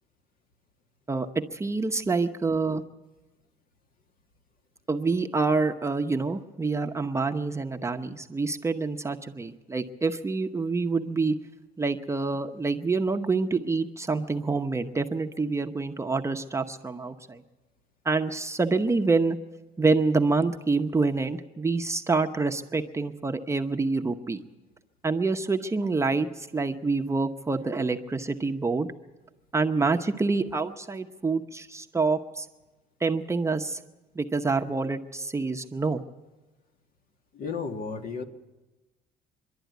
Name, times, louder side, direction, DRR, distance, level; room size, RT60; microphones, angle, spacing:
voice 1, 1.1-2.8 4.9-11.3 11.8-17.4 18.0-19.4 19.8-24.4 25.0-28.9 29.5-32.5 33.0-33.8 34.1-36.0, right 3 dB, 15° right, 4 dB, 0.8 m, -27 dB
voice 2, 37.3-38.2, left 5 dB, 55° left, 7 dB, 1.8 m, -33 dB
25.0 x 11.5 x 9.3 m, 1.1 s
cardioid pair, 110°, 17 cm